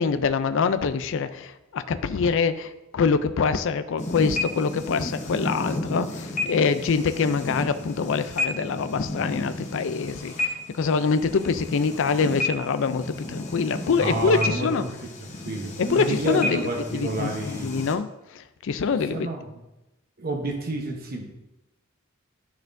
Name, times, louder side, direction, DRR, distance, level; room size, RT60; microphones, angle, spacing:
voice 1, 0.0-14.8 15.8-18.1 18.4-19.3, left 5 dB, 65° left, 12 dB, 0.4 m, -25 dB
sound 1, 4.0-17.9, left 2 dB, 35° left, 0.9 m, -32 dB
voice 2, 13.8-14.9 15.2-17.7 19.1-19.6 20.2-21.2, right 2 dB, 45° right, 1 dB, 1.0 m, -30 dB
12.5 x 4.3 x 2.6 m, 0.97 s
head